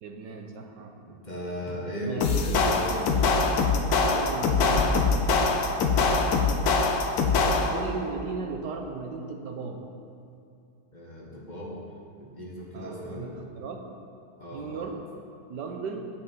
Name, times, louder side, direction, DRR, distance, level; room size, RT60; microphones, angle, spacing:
voice 1, 0.0-1.0 2.1-2.3 2.6-3.1 4.0-5.8 7.4-9.9 12.7-13.8 14.5-15.0 15.5-16.1, right 4 dB, 85° right, 3 dB, 1.6 m, -36 dB
voice 2, 1.0-3.0 6.6-6.8 10.9-11.7 12.2-13.3 14.4-14.8, equal, 25° left, -4 dB, 1.7 m, -36 dB
sound 1, 2.2-7.9, left 4 dB, 65° left, 1.2 m, -23 dB
8.7 x 6.5 x 7.5 m, 2.5 s
omnidirectional pair, 1.8 m